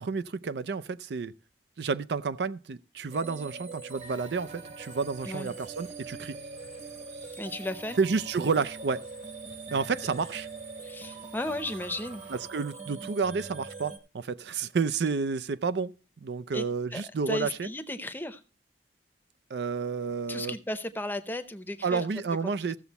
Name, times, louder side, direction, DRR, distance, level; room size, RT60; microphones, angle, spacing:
voice 1, 0.0-1.3 1.8-6.4 8.0-9.0 9.7-10.5 12.3-15.9 16.2-17.7 19.5-20.5 21.8-22.8, right 5 dB, 70° right, 0.5 m, -30 dB
sound 1, 3.1-14.0, right 4 dB, 40° right, 1.3 m, -43 dB
sound 2, 3.9-12.5, right 2 dB, 85° right, 2.4 m, -55 dB
voice 2, 7.4-8.0 10.8-12.2 16.5-16.6 16.9-18.4 20.3-22.0, left 1 dB, 10° left, 0.7 m, -35 dB
15.0 x 6.9 x 4.1 m
head